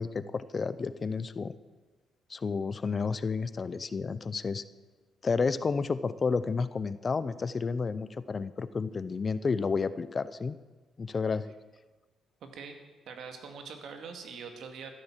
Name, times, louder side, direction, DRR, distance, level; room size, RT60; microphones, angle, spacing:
voice 1, 0.0-1.5 2.3-4.6 5.2-10.6 11.0-11.5, left 4 dB, 35° left, 15 dB, 0.6 m, -31 dB
voice 2, 12.4-12.8 13.1-14.9, right 5 dB, 70° right, 5 dB, 2.1 m, -43 dB
13.5 x 10.5 x 7.4 m, 1.3 s
cardioid pair, 90°, 0 cm